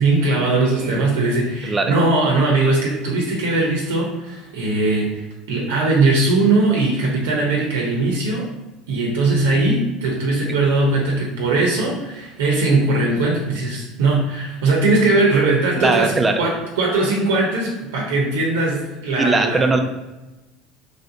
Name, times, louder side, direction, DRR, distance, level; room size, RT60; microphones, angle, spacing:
voice 1, 0.0-8.5 8.9-16.1 16.4-19.7, right 2 dB, 90° right, -2 dB, 0.6 m, -19 dB
voice 2, 0.7-1.0 1.6-1.9 15.8-16.5 19.2-19.8, right 3 dB, 20° right, 6 dB, 0.4 m, -20 dB
3.2 x 2.5 x 2.7 m, 1.1 s
supercardioid pair, 105°, 0 cm